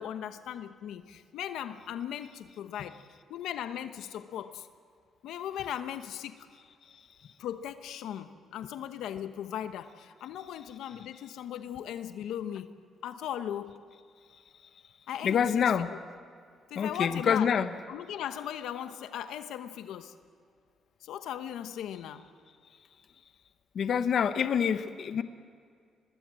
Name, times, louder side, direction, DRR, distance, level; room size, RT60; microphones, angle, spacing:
voice 1, 0.0-3.0 3.3-4.7 5.2-6.4 7.4-12.7 13.0-13.8 15.1-15.6 16.7-17.5 17.9-20.1 21.0-22.2, left 10 dB, 85° left, 10 dB, 1.0 m, -38 dB
voice 2, 15.2-15.9 16.8-17.7 23.7-25.2, left 7 dB, 60° left, 10 dB, 1.0 m, -26 dB
23.5 x 20.5 x 7.7 m, 2.2 s
cardioid pair, 90°, 0 cm